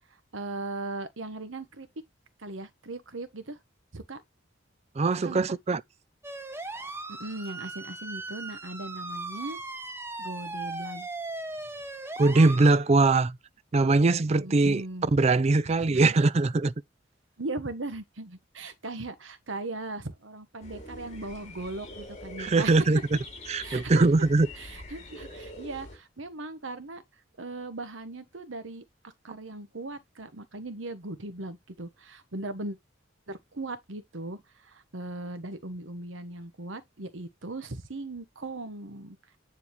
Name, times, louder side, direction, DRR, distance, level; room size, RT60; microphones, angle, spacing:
voice 1, 0.3-1.9 2.4-3.6 3.9-4.2 5.2-5.4 7.1-9.6 10.2-11.1 14.4-15.1 15.8-16.0 17.4-22.9 23.6-24.1 24.5-27.0 27.4-28.8 29.2-32.8 33.3-39.2, right 2 dB, 80° right, 1.2 m, -38 dB
voice 2, 5.0-5.8 12.2-13.4 13.7-14.8 15.1-16.7 22.4-23.0 23.5-24.5, right 3 dB, 35° right, 0.4 m, -21 dB
sound 1, 6.2-12.8, right 2 dB, 10° right, 0.9 m, -38 dB
sound 2, 20.6-26.0, left 1 dB, 35° left, 2.6 m, -44 dB
9.7 x 3.8 x 3.1 m
head